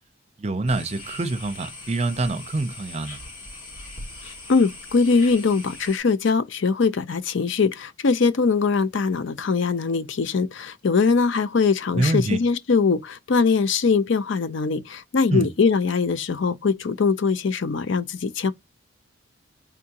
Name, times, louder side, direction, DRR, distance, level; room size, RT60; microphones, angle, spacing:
voice 1, 0.4-3.2 11.9-12.4 15.3-15.5, right 2 dB, 30° right, 0.5 m, -25 dB
sound 1, 0.7-6.0, left 2 dB, 40° left, 2.0 m, -40 dB
voice 2, 4.5-18.5, left 4 dB, 60° left, 0.5 m, -22 dB
3.7 x 3.5 x 2.8 m
head